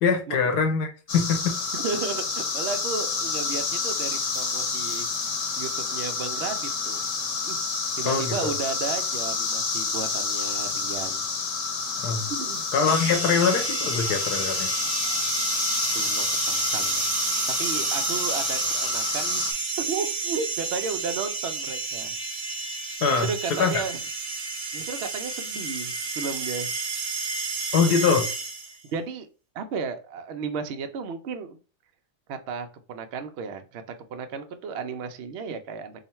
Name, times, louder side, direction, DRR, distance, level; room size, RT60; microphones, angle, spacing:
voice 1, 0.0-1.6 8.0-8.5 12.0-12.3 12.7-14.7 23.0-23.8 27.7-28.3, left 5 dB, 75° left, 1.4 m, -23 dB
sound 1, 1.1-19.5, left 4 dB, 60° left, 1.1 m, -29 dB
voice 2, 1.7-5.1 5.6-7.0 7.4-7.6 8.0-11.2 12.3-12.6 15.9-17.0 17.6-19.5 19.8-22.1 23.1-24.0 24.7-26.7 28.8-29.3 29.5-31.6 32.3-33.8 34.1-35.9, right 5 dB, 75° right, 0.6 m, -33 dB
sound 2, 12.9-28.8, right 4 dB, 50° right, 1.3 m, -30 dB
3.8 x 2.1 x 4.2 m
omnidirectional pair, 1.7 m